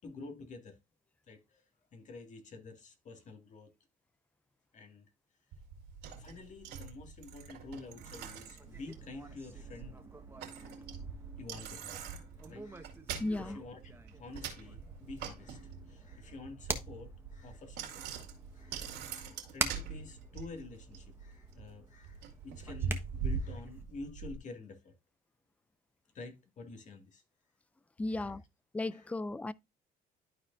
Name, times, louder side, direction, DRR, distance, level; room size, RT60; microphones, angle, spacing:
voice 1, 0.0-0.8 1.3-1.6 1.9-3.7 4.7-5.1 6.2-10.1 10.5-10.8 11.4-12.9 13.3-13.8 14.2-18.1 18.5-24.9 26.1-27.2 28.1-28.3 28.9-29.1, left 3 dB, 45° left, 2.0 m, -49 dB
Bicycle, 5.5-24.4, right 6 dB, 85° right, 2.3 m, -43 dB
sound 1, 7.9-23.8, right 3 dB, 15° right, 1.2 m, -46 dB
voice 2, 13.2-13.6 28.0-28.4 28.7-29.5, left 2 dB, 10° left, 0.3 m, -35 dB
12.0 x 4.4 x 2.6 m
cardioid pair, 110°, 17 cm